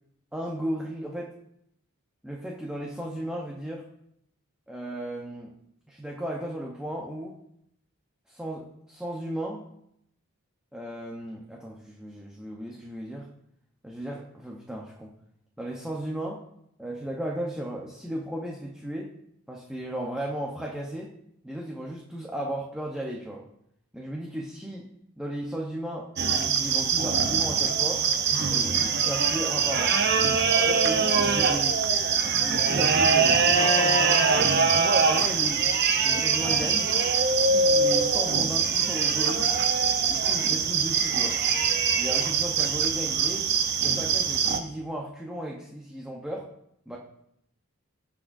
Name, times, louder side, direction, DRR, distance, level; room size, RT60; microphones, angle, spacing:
voice 1, 0.3-1.3 2.2-3.9 4.7-5.5 5.9-7.3 8.3-9.7 10.7-13.3 13.8-15.1 15.6-16.4 16.8-19.1 19.5-21.1 21.4-23.4 23.9-24.9 25.2-28.0 28.5-30.0 30.5-31.8 32.2-35.7 36.0-36.9 37.3-39.5 40.1-41.4 42.0-43.5 43.8-46.5 46.9-47.0, right 1 dB, 5° right, -2 dB, 0.9 m, -35 dB
sound 1, 26.2-44.6, right 5 dB, 45° right, 0.8 m, -23 dB
18.5 x 6.2 x 2.7 m, 0.75 s
head